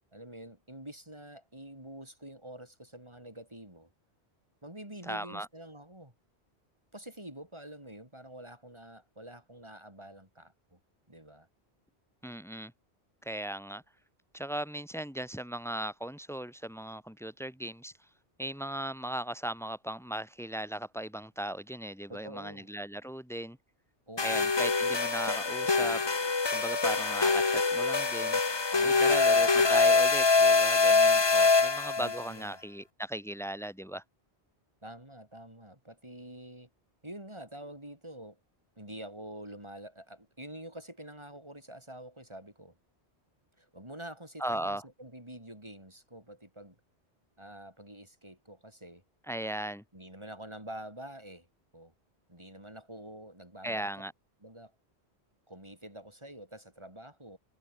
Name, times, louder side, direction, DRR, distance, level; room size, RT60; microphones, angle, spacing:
voice 1, 0.1-3.9 4.6-6.1 6.9-10.8 11.1-11.5 22.1-22.7 24.1-24.5 28.7-29.8 32.0-32.6 34.8-36.7 37.0-38.4 38.8-42.8 43.6-46.8 47.4-49.0 49.9-51.5 51.7-51.9 52.3-53.9 54.4-54.7 55.5-57.4, right 1 dB, 25° right, 6.6 m, -47 dB
voice 2, 5.0-5.5 12.2-12.7 13.2-13.8 14.3-17.9 18.4-23.6 24.2-26.0 26.5-28.4 28.8-34.0 44.4-44.8 49.3-49.8 53.6-54.1, right 1 dB, ahead, 2.6 m, -37 dB
sound 1, 24.2-32.3, left 4 dB, 25° left, 0.9 m, -24 dB
omnidirectional pair, 1.1 m